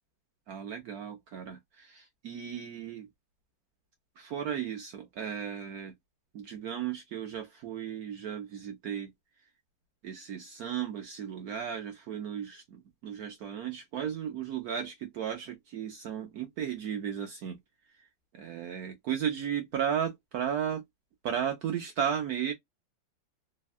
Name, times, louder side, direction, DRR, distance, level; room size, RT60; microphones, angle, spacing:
voice 1, 0.5-3.1 4.2-5.9 6.3-9.1 10.0-17.6 18.3-20.8 21.2-22.5, right 8 dB, 65° right, 0.9 m, -35 dB
3.5 x 2.2 x 2.3 m
omnidirectional pair, 2.1 m